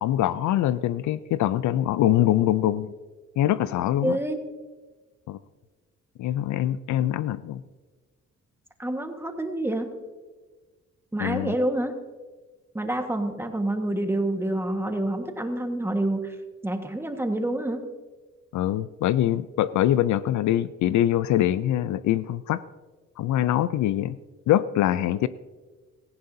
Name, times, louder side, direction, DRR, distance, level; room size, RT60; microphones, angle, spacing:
voice 1, 0.0-2.9 3.4-4.2 5.3-5.4 6.2-7.6 11.2-11.5 18.5-22.6 23.2-24.2 24.5-25.3, left 12 dB, 70° left, 16 dB, 0.5 m, -23 dB
voice 2, 4.0-4.4 7.0-7.1 8.8-9.9 11.1-11.9 12.7-16.3 16.6-17.8, right 1 dB, 10° right, 5 dB, 1.5 m, -27 dB
17.5 x 15.5 x 2.8 m, 1.3 s
cardioid pair, 90°, 30 cm